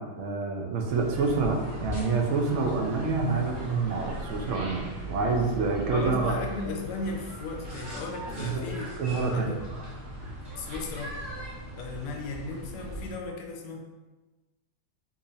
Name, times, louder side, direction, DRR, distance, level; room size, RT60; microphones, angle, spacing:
voice 1, 0.0-6.3 8.4-9.6, right 4 dB, 70° right, 1 dB, 0.7 m, -27 dB
sound 1, 0.9-13.1, right 1 dB, 40° right, 0.6 m, -39 dB
voice 2, 5.9-8.9 9.3-9.7 10.6-11.2 11.7-13.8, left 3 dB, 85° left, 1 dB, 1.2 m, -36 dB
2.8 x 2.8 x 3.9 m, 1.2 s
omnidirectional pair, 1.8 m